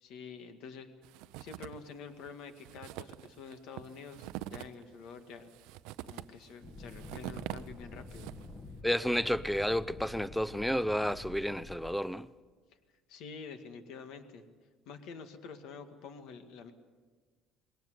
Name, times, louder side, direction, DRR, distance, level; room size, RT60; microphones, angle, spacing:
voice 1, 0.0-0.9 1.4-5.5 6.0-8.3 13.1-14.4 14.9-16.7, left 5 dB, 70° left, 2.0 m, -47 dB
sound 1, 1.0-1.9 2.2-2.3 2.6-8.6, right 15 dB, 85° right, 0.6 m, -44 dB
sound 2, 6.6-12.0, left 2 dB, 25° left, 1.6 m, -48 dB
voice 2, 8.8-12.3, equal, ahead, 0.5 m, -31 dB
20.5 x 18.0 x 8.0 m
cardioid pair, 130°, 0 cm